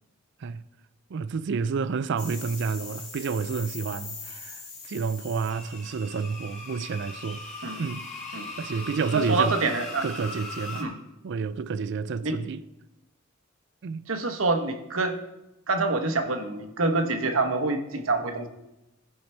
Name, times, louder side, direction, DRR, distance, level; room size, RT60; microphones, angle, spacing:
voice 1, 1.1-7.4 7.8-8.1 8.6-9.6 10.0-10.9 11.2-12.6 13.8-14.1, right 5 dB, 60° right, 0.4 m, -30 dB
sound 1, 2.2-10.8, left 3 dB, 40° left, 2.5 m, -40 dB
voice 2, 9.1-10.0 10.8-10.9 12.2-12.3 14.1-15.2 15.7-18.5, right 3 dB, 90° right, 1.1 m, -26 dB
15.5 x 5.6 x 4.4 m
head